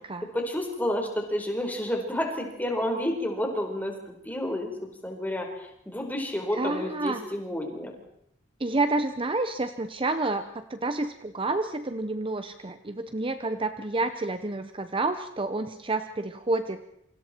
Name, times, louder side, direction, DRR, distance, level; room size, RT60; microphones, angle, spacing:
voice 1, 0.3-4.0 4.2-7.9, left 1 dB, 10° left, 2 dB, 4.7 m, -30 dB
voice 2, 6.5-7.2 8.6-16.8, right 2 dB, 30° right, 9 dB, 0.9 m, -29 dB
28.0 x 25.0 x 4.5 m, 0.73 s
head